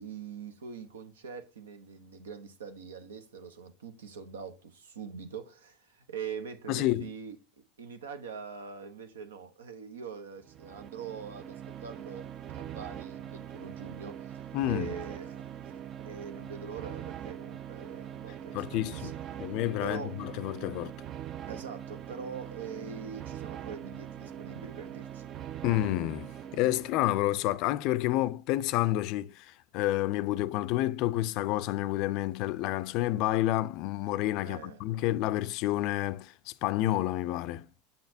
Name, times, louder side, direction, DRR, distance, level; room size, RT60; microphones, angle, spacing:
voice 1, 0.0-7.4 7.8-15.7 16.0-19.1 19.8-20.2 21.5-25.2 34.4-34.9, right 6 dB, 85° right, 0.8 m, -43 dB
voice 2, 6.7-7.1 14.5-14.9 18.5-19.1 19.4-20.9 25.6-37.7, left 15 dB, 55° left, 0.4 m, -29 dB
sound 1, 10.4-27.3, right 10 dB, 45° right, 0.4 m, -42 dB
6.8 x 5.8 x 2.7 m
hypercardioid pair, 90°, 0 cm